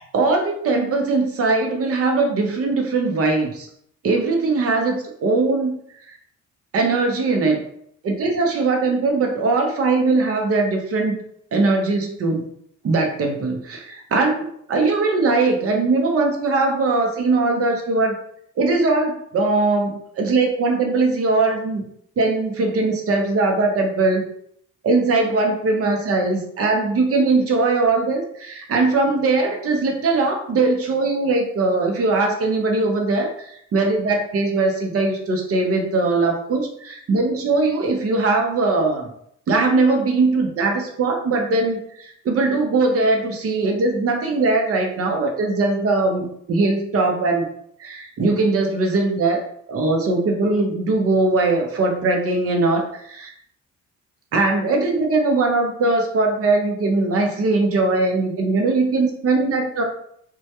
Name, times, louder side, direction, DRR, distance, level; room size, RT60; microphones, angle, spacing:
voice 1, 0.1-3.7 4.0-5.7 6.7-7.6 8.0-11.2 11.5-12.5 12.8-18.2 18.6-21.9 22.2-24.3 24.8-39.1 39.5-47.4 47.8-53.3 54.3-59.8, right 3 dB, 50° right, 2 dB, 0.7 m, -20 dB
2.2 x 2.1 x 2.8 m, 0.68 s
cardioid pair, 90°, 30 cm